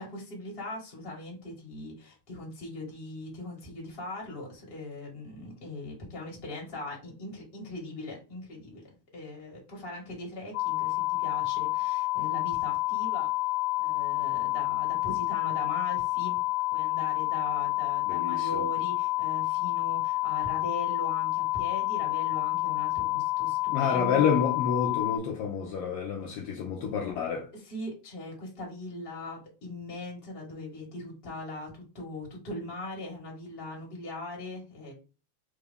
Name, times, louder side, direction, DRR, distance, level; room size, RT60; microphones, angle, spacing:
voice 1, 0.0-13.3 13.8-16.4 16.7-24.4 27.5-34.9, left 1 dB, 30° left, 1.1 m, -40 dB
sound 1, 10.5-25.2, left 20 dB, 70° left, 1.7 m, -29 dB
voice 2, 18.1-18.7 23.7-27.5, left 7 dB, 85° left, 1.3 m, -29 dB
4.6 x 2.4 x 3.4 m
omnidirectional pair, 3.3 m